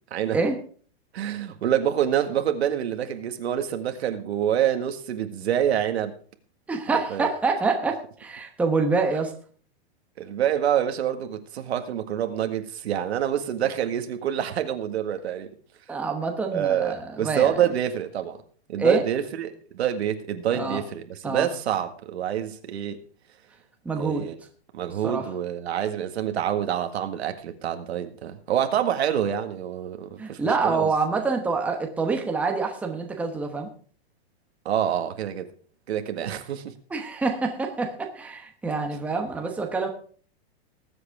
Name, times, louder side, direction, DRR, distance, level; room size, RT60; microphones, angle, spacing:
voice 1, 1.1-6.1 7.1-7.3 10.2-15.6 16.5-18.4 18.7-23.0 24.0-24.4 24.7-30.9 34.7-35.5 35.9-36.7, right 10 dB, 85° right, 1.8 m, -27 dB
voice 2, 6.7-9.3 15.9-17.6 18.8-19.0 20.5-20.8 21.2-21.5 23.8-24.3 25.0-25.3 30.2-33.7 36.9-39.9, right 4 dB, 5° right, 1.0 m, -26 dB
20.0 x 8.0 x 3.6 m
supercardioid pair, 165°, 32 cm